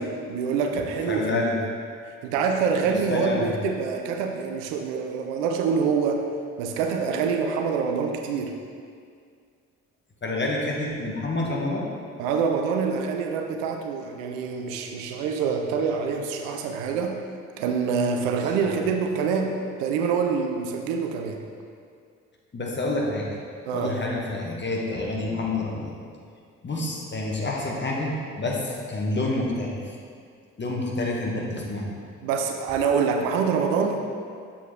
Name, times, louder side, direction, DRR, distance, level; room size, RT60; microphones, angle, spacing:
voice 1, 0.0-1.5 2.2-6.3 6.6-8.6 12.2-17.2 17.6-21.4 23.7-24.0 32.2-34.0, right 5 dB, 70° right, 4 dB, 0.6 m, -26 dB
voice 2, 1.1-1.6 2.8-3.5 10.2-11.9 18.6-18.7 22.5-23.3 23.7-26.0 26.6-30.0 30.6-31.9, left 2 dB, 30° left, -2 dB, 1.3 m, -28 dB
7.2 x 4.3 x 3.6 m, 2.2 s
figure-of-eight pair, 40°, 39 cm